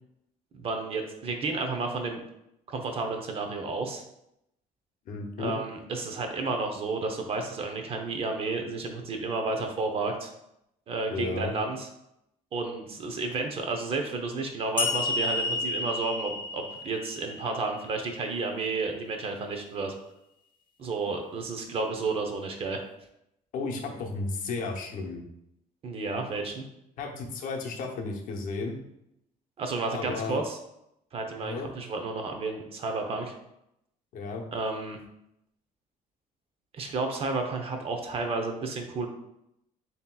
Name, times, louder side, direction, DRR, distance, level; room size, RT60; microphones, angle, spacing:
voice 1, 0.5-2.2 2.7-4.0 5.4-10.3 10.9-11.9 12.5-19.9 20.8-22.8 25.8-26.6 29.6-30.6 31.1-33.3 34.5-35.0 36.7-39.1, right 3 dB, 40° right, 4 dB, 0.6 m, -31 dB
voice 2, 5.1-5.5 11.1-11.5 23.5-25.2 27.0-28.8 29.9-30.4 31.4-31.7 34.1-34.4, left 3 dB, 65° left, 2 dB, 0.7 m, -33 dB
sound 1, 14.8-18.1, left 3 dB, 35° left, 0.5 m, -31 dB
7.1 x 2.8 x 2.2 m, 0.82 s
cardioid pair, 170°, 15 cm